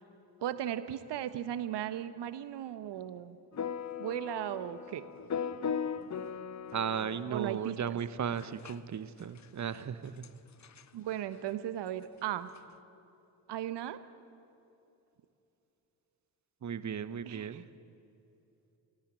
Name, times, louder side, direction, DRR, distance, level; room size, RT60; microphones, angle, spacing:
voice 1, 0.4-3.4 4.0-5.1 7.3-7.8 10.9-12.5 13.5-14.0 17.3-17.6, right 11 dB, 55° right, 12 dB, 1.3 m, -36 dB
sound 1, 3.5-7.4 8.4-8.8 9.4-9.5 9.8-9.9 10.2-10.3 10.6-10.8 12.6-12.7, left 7 dB, 35° left, 1.0 m, -38 dB
voice 2, 6.7-10.3 16.6-17.6, right 7 dB, 35° right, 14 dB, 1.1 m, -36 dB
25.0 x 17.5 x 8.7 m, 2.9 s
figure-of-eight pair, 45°, 50 cm